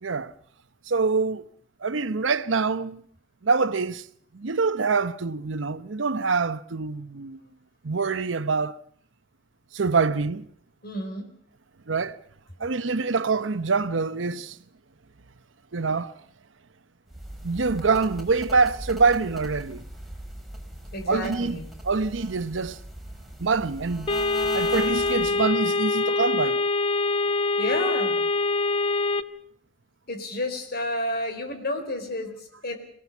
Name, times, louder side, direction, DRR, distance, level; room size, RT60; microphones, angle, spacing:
voice 1, 0.0-0.3 0.9-1.4 1.8-3.0 3.4-4.0 4.3-7.4 7.8-8.8 9.7-10.5 11.9-12.2 12.6-14.6 15.7-16.1 17.4-19.8 21.1-21.6 21.8-22.8 23.4-24.1 24.5-26.6, right 4 dB, 90° right, 0.8 m, -25 dB
voice 2, 10.8-11.3 20.9-21.7 27.6-28.2 30.1-32.8, left 1 dB, 55° left, 4.2 m, -31 dB
sound 1, 17.1-25.5, right 1 dB, ahead, 3.9 m, -40 dB
sound 2, 24.1-29.2, left 3 dB, 30° left, 0.9 m, -24 dB
25.0 x 17.5 x 7.2 m
head